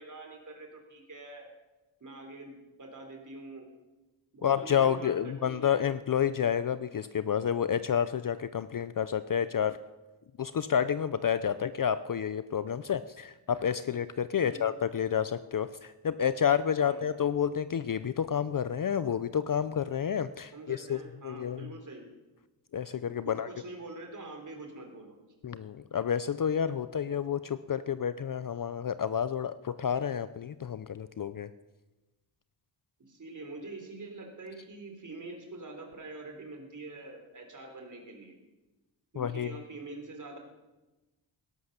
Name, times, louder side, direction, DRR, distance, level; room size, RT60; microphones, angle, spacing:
voice 1, 0.0-1.5 2.0-3.7 4.3-5.8 14.4-14.6 16.8-17.1 20.5-22.1 23.2-25.2 33.0-38.4 39.1-40.4, right 2 dB, 40° right, 3 dB, 3.4 m, -45 dB
voice 2, 4.4-9.8 10.4-21.0 21.2-21.7 22.7-23.5 25.4-31.5 39.2-39.5, left 8 dB, 45° left, 13 dB, 0.5 m, -30 dB
18.0 x 11.0 x 6.6 m, 1.1 s
wide cardioid pair, 145°, 48 cm